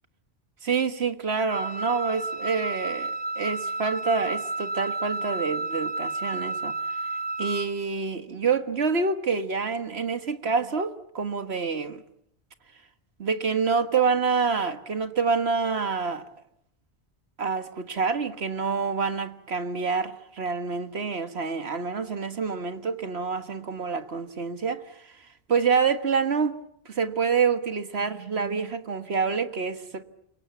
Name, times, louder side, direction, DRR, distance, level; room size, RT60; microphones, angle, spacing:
voice 1, 0.6-6.7 7.4-12.0 13.2-16.2 17.4-24.8 25.5-26.6 26.9-30.0, right 5 dB, 70° right, 1.8 m, -27 dB
Wind instrument woodwind instrument, 1.5-7.7, right 2 dB, 40° right, 1.8 m, -31 dB
28.5 x 23.5 x 8.4 m
omnidirectional pair, 1.1 m